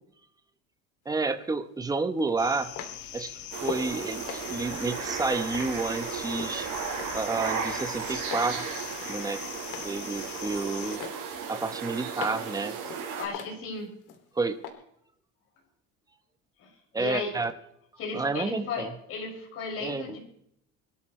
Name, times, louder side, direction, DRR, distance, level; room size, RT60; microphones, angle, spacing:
sound 1, 1.1-1.2 2.2-3.9 4.3-6.6 7.0-7.4 7.6-8.5 8.9-10.0 10.3-10.7 11.0-12.5 12.9-14.2 14.6-14.7, left 9 dB, 80° left, 2.8 m, -41 dB
voice 1, 1.1-2.7 3.1-6.7 7.1-8.7 9.1-9.4 9.8-11.0 11.5-12.8 14.4-14.6 16.9-17.5 18.1-18.9 19.8-20.2, right 3 dB, 10° right, 9 dB, 1.0 m, -30 dB
sound 2, 2.4-11.0, left 10 dB, 65° left, 1.8 m, -42 dB
sound 3, 3.5-13.3, right 6 dB, 75° right, 5.8 m, -35 dB
voice 2, 13.1-13.9 16.6-16.7 17.0-17.3 18.0-20.2, left 4 dB, 45° left, -1 dB, 6.2 m, -35 dB
23.5 x 13.0 x 3.2 m, 0.73 s
cardioid pair, 155°, 32 cm